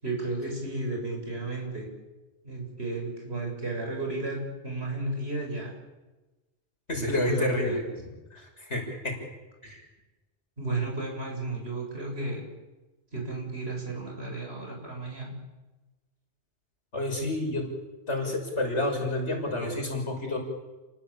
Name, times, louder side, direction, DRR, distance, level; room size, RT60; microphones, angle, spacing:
voice 1, 0.0-1.9 2.4-5.7 6.9-7.8 10.6-12.4 13.1-15.3, right 2 dB, 65° right, 1 dB, 7.5 m, -33 dB
voice 2, 6.9-7.8 8.3-9.1 9.6-9.8 16.9-17.7 18.1-20.4, left 2 dB, 85° left, 2 dB, 6.8 m, -29 dB
30.0 x 19.0 x 8.8 m, 1.1 s
omnidirectional pair, 1.2 m